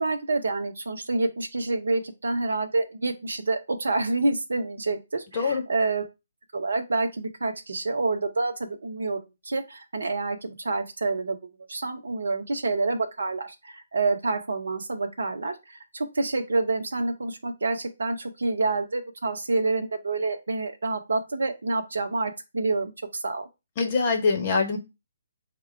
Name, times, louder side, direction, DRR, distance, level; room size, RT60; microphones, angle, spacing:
voice 1, 0.0-6.1 6.5-11.4 11.7-23.5, right 3 dB, 65° right, 6 dB, 0.7 m, -28 dB
voice 2, 23.8-24.8, left 4 dB, 30° left, 2 dB, 1.0 m, -23 dB
3.5 x 2.2 x 4.4 m, 0.25 s
figure-of-eight pair, 135°, 0 cm